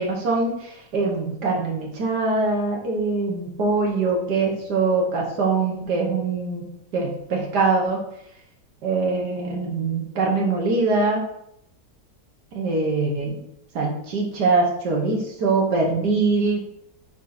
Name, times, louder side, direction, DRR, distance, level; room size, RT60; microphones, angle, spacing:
voice 1, 0.0-6.7 6.9-8.0 8.8-11.2 12.5-13.4 13.8-16.6, right 3 dB, 85° right, -1 dB, 1.9 m, -23 dB
8.0 x 3.0 x 4.0 m, 0.76 s
omnidirectional pair, 1.7 m